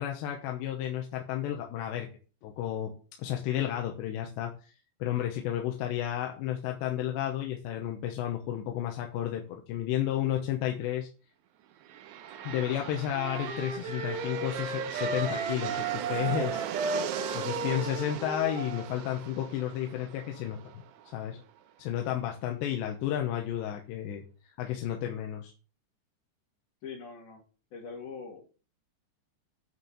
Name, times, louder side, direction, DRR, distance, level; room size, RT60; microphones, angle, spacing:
voice 1, 0.0-2.1 2.4-2.9 3.2-4.7 5.0-11.1 12.4-16.6 17.3-20.6 21.1-21.4 21.8-24.2 24.6-25.5, left 11 dB, 80° left, 2 dB, 3.2 m, -32 dB
sound 1, 11.8-21.6, right 10 dB, 85° right, 3.2 m, -39 dB
sound 2, 13.1-18.9, right 3 dB, 40° right, 2.8 m, -35 dB
voice 2, 26.8-27.4 27.7-28.4, left 5 dB, 60° left, -1 dB, 4.2 m, -42 dB
9.5 x 4.5 x 7.2 m, 0.37 s
omnidirectional pair, 5.1 m